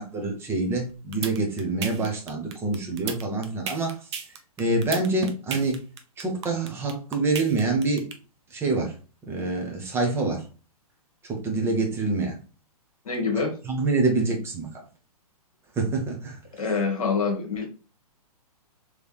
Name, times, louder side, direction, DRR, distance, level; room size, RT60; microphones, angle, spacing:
voice 1, 0.0-4.0 4.6-5.8 6.2-8.1 8.5-8.9 9.2-10.4 11.2-12.3 13.6-14.8 15.8-16.4, right 3 dB, 10° right, 1 dB, 0.9 m, -26 dB
sound 1, 0.9-8.1, right 7 dB, 45° right, 0.6 m, -33 dB
voice 2, 13.0-13.5 16.6-17.6, left 4 dB, 65° left, 2 dB, 1.3 m, -25 dB
3.4 x 3.1 x 2.3 m, 0.35 s
figure-of-eight pair, 115°, 20 cm